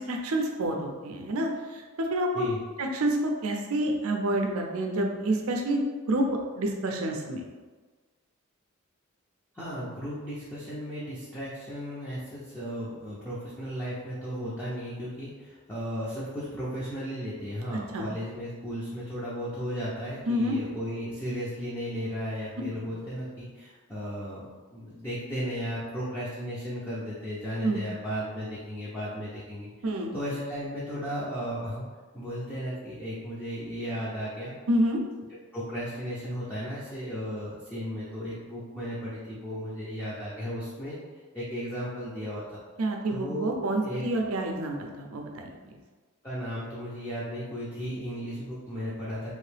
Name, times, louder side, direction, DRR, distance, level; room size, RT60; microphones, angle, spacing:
voice 1, 0.0-2.5 2.8-5.8 6.1-6.3 6.6-7.4 17.9-18.1 20.3-20.5 22.7-22.8 27.6-27.8 29.8-30.1 34.7-35.0 42.8-45.5, right 1 dB, 80° right, 2 dB, 0.5 m, -28 dB
voice 2, 9.5-24.4 24.7-31.8 32.1-34.5 35.5-41.0 41.3-42.6 43.1-43.6 43.8-44.0 46.2-49.4, equal, 10° left, -9 dB, 0.6 m, -35 dB
3.1 x 2.7 x 3.3 m, 1.4 s
head